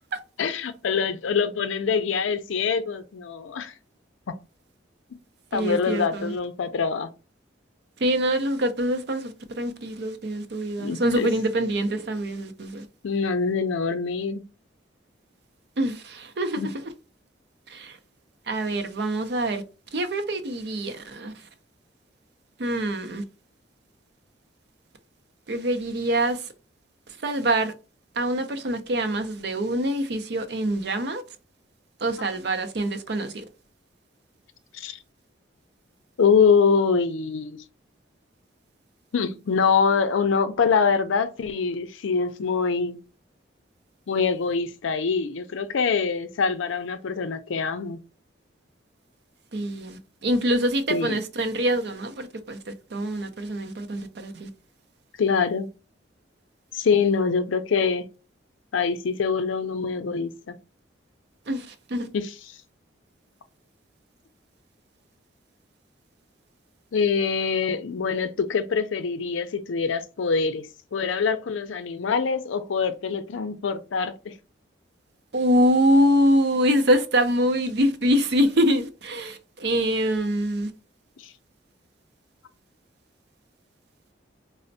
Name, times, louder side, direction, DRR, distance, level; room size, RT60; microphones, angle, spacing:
voice 1, 0.4-3.7 5.5-7.1 10.8-11.3 13.0-14.4 16.6-16.7 34.7-35.0 36.2-37.6 39.1-43.0 44.1-48.0 50.9-51.2 55.2-55.7 56.7-58.1 58.7-60.6 62.1-62.3 66.9-70.7 70.9-74.3 81.2-81.3, left 5 dB, 80° left, 0.4 m, -24 dB
voice 2, 5.5-6.3 8.0-12.9 15.8-16.9 17.7-18.0 18.5-19.6 19.9-21.3 22.6-23.2 25.5-26.5 27.1-27.7 28.2-31.2 32.0-33.4 49.5-54.5 61.5-62.1 75.3-80.7, equal, 55° right, 0.5 m, -25 dB
4.2 x 2.0 x 2.6 m
head